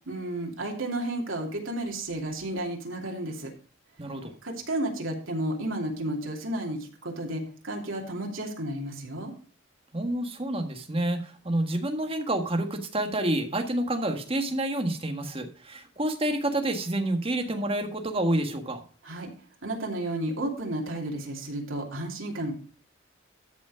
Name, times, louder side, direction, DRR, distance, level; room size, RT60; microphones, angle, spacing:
voice 1, 0.1-3.5 4.4-9.3 19.0-19.3 19.6-22.5, right 1 dB, 85° right, 0 dB, 2.7 m, -32 dB
voice 2, 4.0-4.3 9.9-18.8, right 1 dB, 30° right, 4 dB, 1.6 m, -28 dB
13.5 x 5.3 x 4.9 m, 0.41 s
head